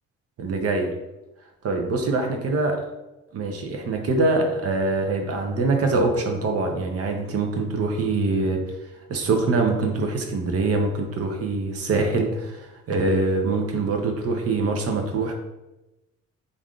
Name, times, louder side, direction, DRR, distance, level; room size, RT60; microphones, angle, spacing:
voice 1, 0.4-0.9 1.6-2.8 3.3-8.6 9.1-15.3, right 3 dB, 50° right, 3 dB, 0.6 m, -24 dB
3.4 x 2.5 x 2.3 m, 0.99 s
cardioid pair, 90°, 30 cm